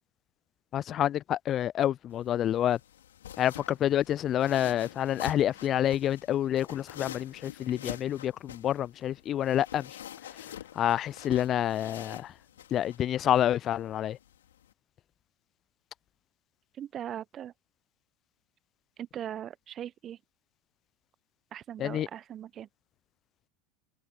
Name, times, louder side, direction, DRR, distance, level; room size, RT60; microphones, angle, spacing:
voice 1, 0.7-2.8 3.4-9.9 10.8-12.3 12.7-14.2 21.8-22.1, left 11 dB, 40° left, 0.4 m, -28 dB
sound 1, 2.1-14.7, left 11 dB, 75° left, 3.6 m, -46 dB
voice 2, 16.7-17.5 19.0-20.2 21.5-22.7, right 10 dB, 35° right, 1.0 m, -40 dB
figure-of-eight pair, 80°, 0 cm